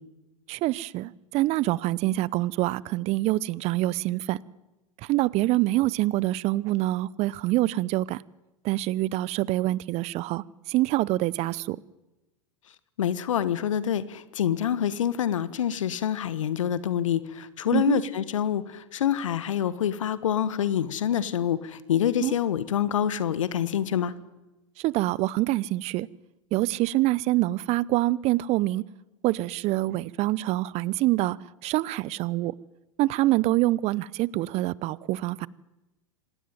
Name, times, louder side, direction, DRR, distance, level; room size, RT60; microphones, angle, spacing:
voice 1, 0.5-4.4 5.0-8.2 8.6-11.8 17.7-18.0 22.2-22.3 24.8-26.1 26.5-28.8 29.2-31.4 31.6-32.5 33.0-35.5, right 17 dB, 40° right, 23 dB, 0.8 m, -25 dB
voice 2, 13.0-24.1, left 9 dB, 70° left, 16 dB, 1.5 m, -26 dB
26.5 x 18.0 x 9.3 m, 1.0 s
figure-of-eight pair, 95°, 17 cm